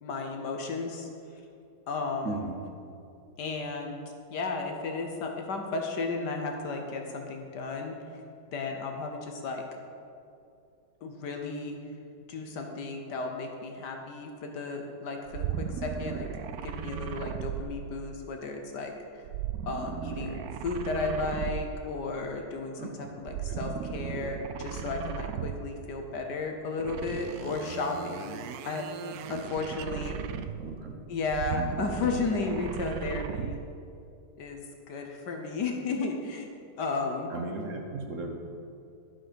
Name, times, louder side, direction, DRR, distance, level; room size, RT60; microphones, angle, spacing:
voice 1, 0.0-1.1 1.9-2.4 3.4-4.0 4.3-8.0 8.5-9.6 11.0-11.8 12.3-16.3 16.6-18.9 19.7-28.4 28.6-30.2 31.1-33.6 34.4-36.5 36.8-37.3, left 3 dB, 65° left, 3 dB, 1.5 m, -34 dB
voice 2, 2.2-2.6 22.7-23.1 23.5-23.6 29.9-30.9 37.3-38.4, right 3 dB, 50° right, 2 dB, 1.2 m, -37 dB
sound 1, 15.3-18.3 19.2-21.9 23.2-25.8 26.8-30.8 31.2-33.7, right 9 dB, 70° right, 0.9 m, -36 dB
12.5 x 7.5 x 5.2 m, 2.5 s
omnidirectional pair, 2.0 m